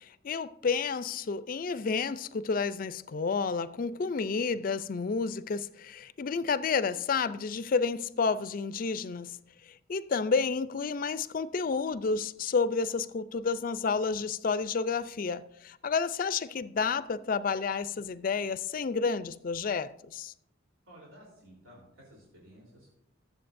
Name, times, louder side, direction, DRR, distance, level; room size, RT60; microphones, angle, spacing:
voice 1, 0.0-9.4 9.6-20.3, left 5 dB, 45° left, 0.4 m, -30 dB
voice 2, 20.8-22.9, equal, 90° right, 3.5 m, -54 dB
21.5 x 7.6 x 2.6 m
head